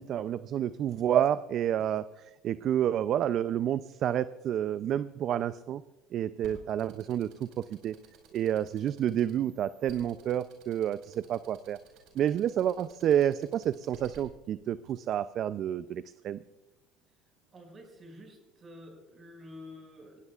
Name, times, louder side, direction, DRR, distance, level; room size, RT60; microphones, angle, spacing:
voice 1, 0.0-5.8 6.1-7.3 7.6-8.0 8.3-11.8 12.2-16.4, right 10 dB, 55° right, 14 dB, 0.5 m, -29 dB
sound 1, 6.4-14.2, right 6 dB, 70° right, 5.2 m, -54 dB
voice 2, 17.5-20.2, left 1 dB, 35° right, 2 dB, 5.9 m, -49 dB
21.5 x 17.0 x 2.4 m, 1.0 s
supercardioid pair, 85°, 0 cm